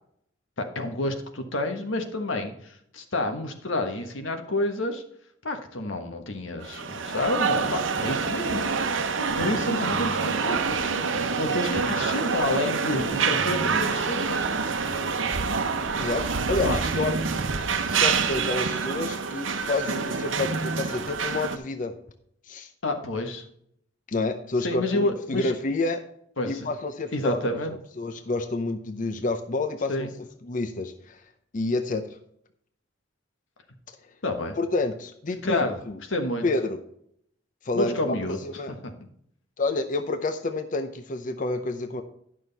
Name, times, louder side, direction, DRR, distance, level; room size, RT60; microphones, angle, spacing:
voice 1, 0.6-5.0 5.4-8.6 9.4-10.9 11.4-14.4 16.6-16.8 22.8-23.4 24.6-25.6 26.4-26.7 27.1-27.7 29.9-30.1 34.2-34.6 35.4-35.8 36.1-36.4 37.7-38.4 38.7-38.8, left 2 dB, 90° left, 5 dB, 1.4 m, -29 dB
sound 1, 6.6-21.6, right 5 dB, 85° right, 0.9 m, -27 dB
voice 2, 16.5-17.2 17.9-21.9 22.5-22.7 24.1-26.0 26.4-27.4 27.7-31.2 31.5-32.0 34.6-36.0 36.4-36.8 37.6-38.7 39.6-42.0, left 2 dB, 45° left, 7 dB, 0.7 m, -29 dB
11.0 x 6.3 x 4.1 m, 0.69 s
head